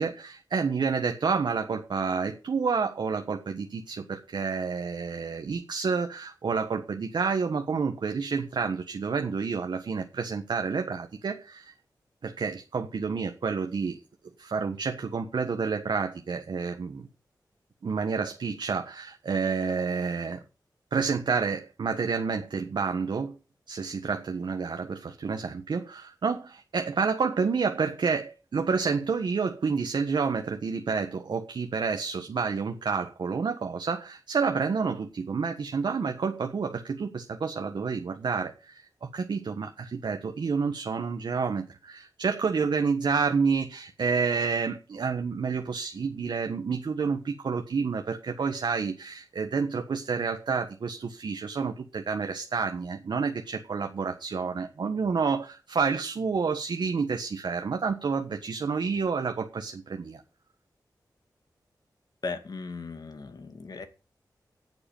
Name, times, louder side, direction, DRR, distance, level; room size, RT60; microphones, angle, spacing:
voice 1, 0.0-11.7 12.2-14.0 14.4-17.1 17.8-20.4 20.9-23.4 23.7-60.2, right 5 dB, 75° right, 5 dB, 1.5 m, -29 dB
voice 2, 62.2-63.8, left 4 dB, 60° left, 7 dB, 2.5 m, -37 dB
9.7 x 8.0 x 9.0 m, 0.33 s
wide cardioid pair, 95°, 8 cm